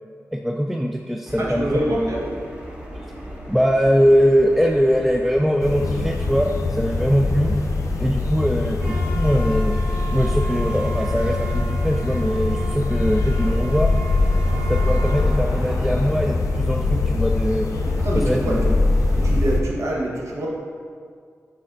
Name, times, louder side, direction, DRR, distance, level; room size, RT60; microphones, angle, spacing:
voice 1, 0.3-2.1 3.5-7.6 8.0-9.7 10.1-13.9 14.7-17.7 18.1-18.8, equal, 5° right, 2 dB, 0.3 m, -21 dB
sound 1, 1.3-19.6, right 1 dB, 20° right, 1.2 m, -36 dB
voice 2, 1.4-2.4 18.0-18.6 19.2-20.5, right 1 dB, 70° right, -4 dB, 1.3 m, -25 dB
sound 2, 5.6-19.6, left 3 dB, 90° left, 0.5 m, -22 dB
6.5 x 4.2 x 3.9 m, 2.1 s
wide cardioid pair, 75°, 5 cm